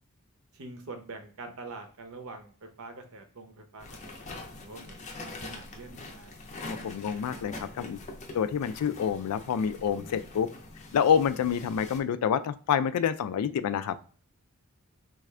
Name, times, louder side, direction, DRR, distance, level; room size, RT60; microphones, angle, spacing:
voice 1, 0.5-6.3, right 3 dB, 65° right, 6 dB, 0.7 m, -45 dB
sound 1, 3.8-12.0, left 2 dB, 30° left, 0.5 m, -44 dB
voice 2, 6.7-8.0 8.3-10.5 10.9-14.0, left 7 dB, 85° left, 13 dB, 0.3 m, -27 dB
3.4 x 2.4 x 3.2 m, 0.43 s
head